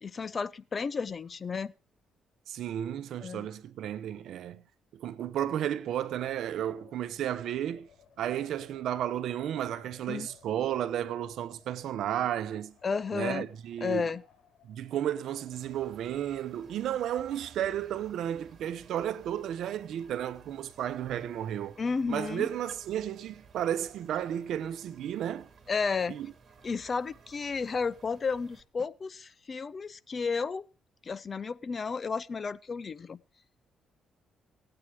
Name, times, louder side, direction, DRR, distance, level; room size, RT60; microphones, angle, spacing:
voice 1, 0.0-1.7 3.2-3.5 10.1-10.3 12.8-13.5 13.8-14.2 21.8-22.5 25.7-26.1 26.6-30.7 31.0-33.2, left 5 dB, 40° left, 0.6 m, -32 dB
voice 2, 2.5-4.6 4.9-7.9 8.2-12.7 13.1-14.1 14.6-21.7 22.1-25.5 26.1-26.3, right 10 dB, 75° right, 0.8 m, -33 dB
Wind, 5.8-16.2, left 7 dB, 60° left, 3.4 m, -60 dB
sound 1, 15.5-28.6, right 5 dB, 45° right, 2.7 m, -57 dB
17.0 x 8.8 x 4.8 m
cardioid pair, 90°, 0 cm